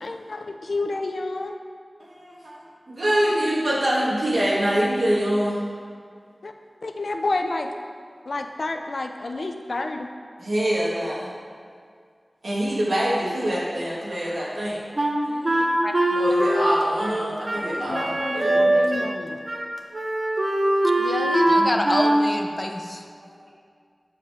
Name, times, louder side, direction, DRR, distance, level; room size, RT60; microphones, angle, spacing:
voice 1, 0.0-1.5 6.4-6.5 6.8-7.7 8.3-10.1 17.5-19.4, left 2 dB, 80° left, 5 dB, 0.5 m, -29 dB
voice 2, 2.0-2.6 2.9-5.6 10.4-11.3 12.4-14.8 16.2-19.0 21.4-21.9, right 1 dB, 85° right, -6 dB, 2.0 m, -25 dB
Wind instrument woodwind instrument, 15.0-19.2 19.5-19.7 19.9-22.3, right 1 dB, 40° right, 0.9 m, -22 dB
voice 3, 15.3-15.9 21.0-23.0, left 1 dB, 35° left, 4 dB, 0.7 m, -28 dB
7.6 x 5.4 x 5.0 m, 2.1 s
wide cardioid pair, 45°, 0 cm